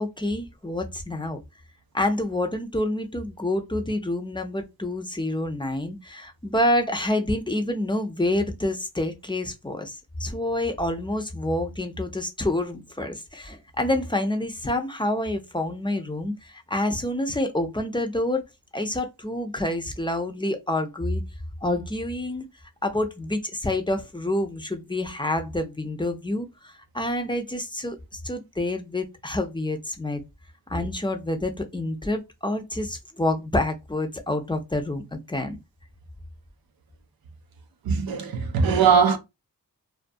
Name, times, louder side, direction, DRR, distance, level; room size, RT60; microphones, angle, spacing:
voice 1, 0.0-1.4 1.9-18.4 18.7-21.2 21.6-22.5 22.8-30.2 30.7-35.6, left 1 dB, 15° left, 0.5 m, -28 dB
voice 2, 37.8-39.2, right 6 dB, 90° right, 0.5 m, -20 dB
2.3 x 2.2 x 2.5 m
cardioid pair, 50°, 35 cm